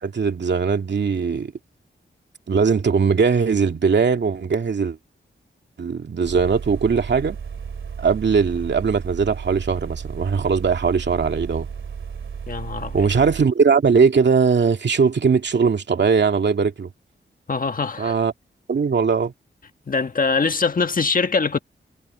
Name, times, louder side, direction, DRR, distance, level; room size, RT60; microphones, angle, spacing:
voice 1, 0.0-1.5 2.5-5.0 5.8-7.4 8.0-11.7 12.9-16.9 18.0-18.3 18.7-19.3, right 5 dB, 65° right, 2.3 m, -20 dB
sound 1, 6.2-13.5, right 6 dB, 90° right, 2.5 m, -34 dB
voice 2, 12.5-13.1 17.5-18.1 19.9-21.6, left 4 dB, 45° left, 1.5 m, -23 dB
wide cardioid pair, 110°, 20 cm